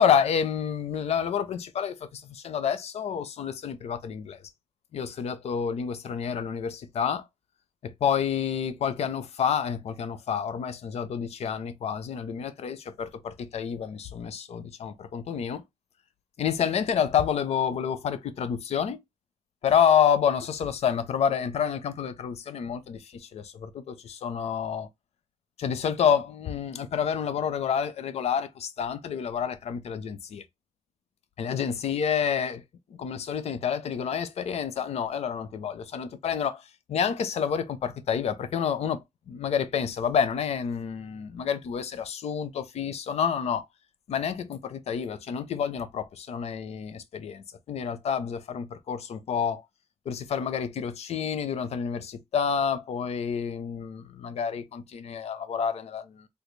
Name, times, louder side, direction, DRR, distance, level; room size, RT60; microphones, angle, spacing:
voice 1, 0.0-4.4 4.9-7.3 7.8-15.6 16.4-19.0 19.6-24.9 25.6-30.4 31.4-32.6 33.0-36.6 36.9-39.0 39.3-43.7 44.1-49.6 50.1-56.3, left 7 dB, 65° left, 0.5 m, -28 dB
3.4 x 2.3 x 3.1 m
wide cardioid pair, 160°, 11 cm